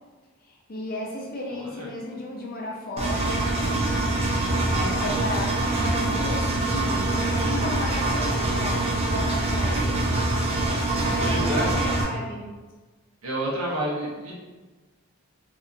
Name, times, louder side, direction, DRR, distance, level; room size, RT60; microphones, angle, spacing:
voice 1, 0.7-4.2 4.7-10.0 11.0-12.5, left 1 dB, 45° left, -2 dB, 0.5 m, -33 dB
Engine, 3.0-12.0, right 2 dB, 30° right, 0.4 m, -24 dB
voice 2, 11.2-11.7 13.2-14.3, right 1 dB, 80° right, -4 dB, 0.8 m, -29 dB
2.8 x 2.4 x 2.4 m, 1.3 s
head